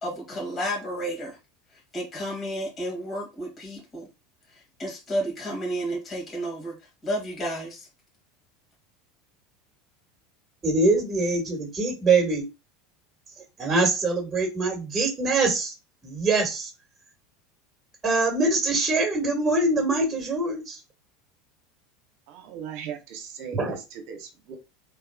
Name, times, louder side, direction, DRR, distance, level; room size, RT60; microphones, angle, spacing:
voice 1, 0.0-1.4 1.9-4.1 4.8-6.7 7.0-7.9, equal, 30° left, 1.9 m, -31 dB
voice 2, 10.6-12.4 13.6-15.7 16.0-16.7 18.0-20.8 23.5-23.8, right 3 dB, 20° right, 1.7 m, -23 dB
voice 3, 22.3-24.6, right 8 dB, 60° right, 1.0 m, -38 dB
3.5 x 3.3 x 2.3 m
hypercardioid pair, 80°, 0 cm